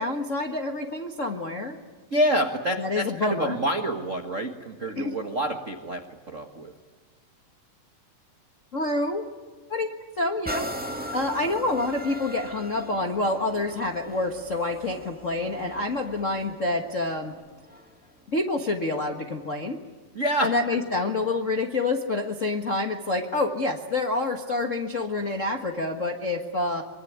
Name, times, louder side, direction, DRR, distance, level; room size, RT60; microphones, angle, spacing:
voice 1, 0.0-1.8 2.8-3.6 5.0-5.2 8.7-9.2 9.7-10.7 11.1-17.3 18.3-19.8 20.4-26.8, left 2 dB, 65° left, 5 dB, 0.7 m, -27 dB
voice 2, 2.1-6.7 20.1-20.8, equal, 85° right, 5 dB, 0.6 m, -27 dB
sound 1, 10.4-18.1 18.6-18.7, equal, 5° right, 0.7 m, -39 dB
24.0 x 24.0 x 9.5 m, 1.4 s
omnidirectional pair, 4.1 m